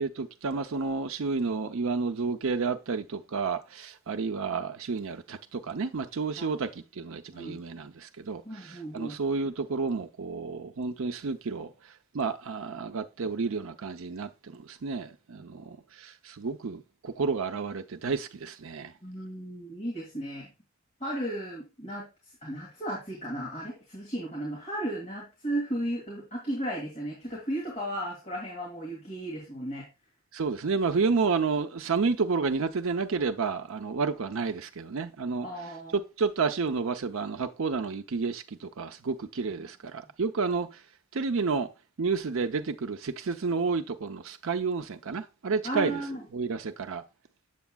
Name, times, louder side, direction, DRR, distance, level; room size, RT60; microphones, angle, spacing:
voice 1, 0.0-11.7 12.1-18.9 30.3-35.5 35.9-40.8 41.1-41.7 42.0-46.0 46.3-47.0, right 4 dB, 65° right, 0.6 m, -30 dB
voice 2, 8.4-9.2 19.0-20.5 21.0-22.1 22.4-29.9 35.4-36.0 39.5-39.7 40.0-40.1 45.6-46.3, right 1 dB, 30° left, 2.2 m, -35 dB
8.1 x 7.0 x 2.3 m
head